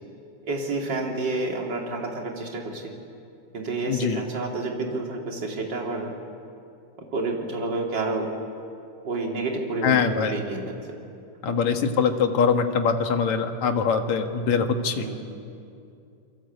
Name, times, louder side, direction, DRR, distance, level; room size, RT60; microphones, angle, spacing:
voice 1, 0.4-2.9 3.5-6.1 7.0-8.3 9.0-10.8 11.5-11.6 14.9-15.4, right 3 dB, 35° right, 0 dB, 3.6 m, -29 dB
voice 2, 3.9-4.2 9.8-10.4 11.4-15.1, left 6 dB, 65° left, 5 dB, 2.7 m, -23 dB
28.0 x 23.5 x 8.2 m, 2.5 s
omnidirectional pair, 3.6 m